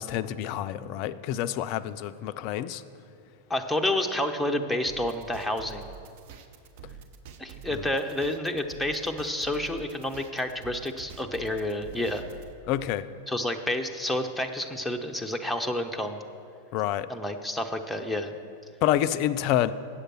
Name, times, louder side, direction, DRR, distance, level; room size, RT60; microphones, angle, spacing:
voice 1, 0.0-2.8 7.7-7.9 12.7-13.1 16.7-17.1 18.8-19.7, left 12 dB, 45° left, 13 dB, 0.3 m, -28 dB
voice 2, 3.5-5.8 7.4-12.2 13.3-16.2 17.1-18.3, left 1 dB, ahead, 3 dB, 0.6 m, -29 dB
sound 1, 4.9-12.5, right 7 dB, 50° right, 0.7 m, -46 dB
8.2 x 6.6 x 7.5 m, 2.3 s
figure-of-eight pair, 90°, 0 cm